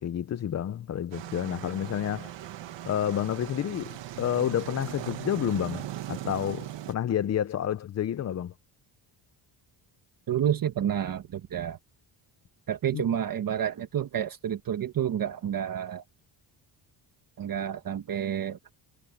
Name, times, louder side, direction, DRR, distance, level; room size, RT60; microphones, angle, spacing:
voice 1, 0.0-2.3 2.8-8.5 12.9-13.0, left 10 dB, 35° left, 0.6 m, -30 dB
sound 1, 1.1-6.9, right 13 dB, 70° right, 1.5 m, -39 dB
voice 2, 10.3-11.8 12.7-16.0 17.4-18.6, right 9 dB, 45° right, 1.4 m, -29 dB
cardioid pair, 155°, 46 cm